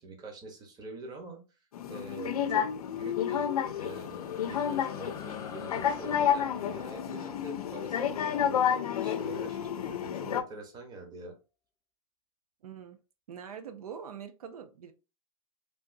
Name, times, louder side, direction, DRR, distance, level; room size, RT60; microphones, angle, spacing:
voice 1, 0.0-1.4 1.9-2.7 2.9-11.4, right 2 dB, 20° right, 3 dB, 1.0 m, -45 dB
sound 1, 1.7-10.4, left 9 dB, 85° left, 0.5 m, -30 dB
sound 2, 3.2-10.0, left 7 dB, 20° left, 0.6 m, -50 dB
voice 2, 12.6-13.0 13.3-14.9, right 7 dB, 80° right, 9 dB, 0.5 m, -43 dB
3.4 x 2.6 x 2.6 m, 0.31 s
hypercardioid pair, 125°, 19 cm